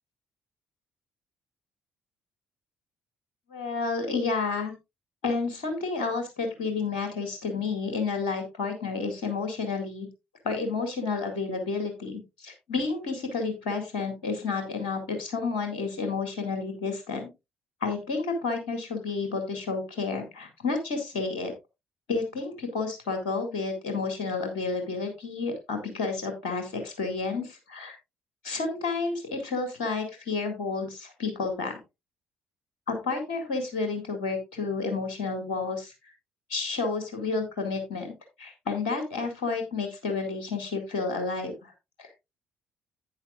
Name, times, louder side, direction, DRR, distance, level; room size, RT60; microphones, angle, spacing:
voice 1, 3.5-4.7 5.2-10.1 10.4-17.3 17.8-21.5 22.1-28.0 28.4-31.7 32.9-35.9 36.5-38.1 38.4-41.7 42.0-42.1, left 4 dB, 70° left, 5 dB, 2.0 m, -30 dB
11.5 x 8.9 x 2.4 m, 0.23 s
figure-of-eight pair, 45°, 4 cm